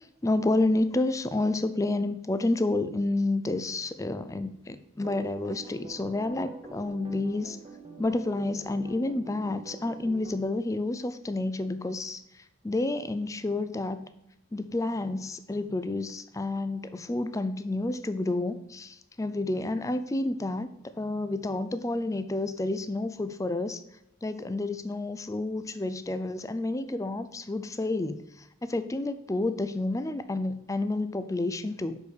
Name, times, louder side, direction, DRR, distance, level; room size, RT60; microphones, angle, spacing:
voice 1, 0.2-7.6 8.0-14.1 14.5-23.8 24.2-32.0, left 2 dB, 15° left, 11 dB, 0.4 m, -30 dB
sound 1, 5.0-10.4, right 3 dB, 25° right, 0.9 m, -46 dB
6.2 x 5.3 x 4.9 m, 0.83 s
head